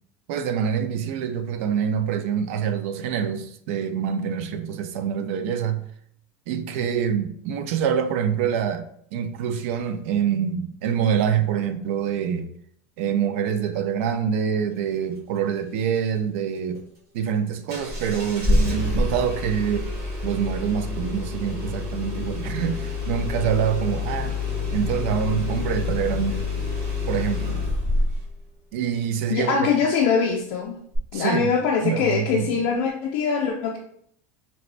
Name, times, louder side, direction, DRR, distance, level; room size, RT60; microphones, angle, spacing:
voice 1, 0.3-5.8 6.5-8.9 9.1-12.5 13.0-16.8 17.1-19.9 20.2-24.4 24.7-26.4 27.1-27.6 28.7-29.5 31.1-31.5 31.8-32.5, right 8 dB, 65° right, 0.4 m, -25 dB
Engine starting, 17.7-28.3 30.9-31.0, left 3 dB, 35° right, 1.2 m, -27 dB
voice 2, 29.3-30.8 31.1-33.8, left 6 dB, 55° left, 0.4 m, -23 dB
4.0 x 2.1 x 2.5 m
supercardioid pair, 165°, 8 cm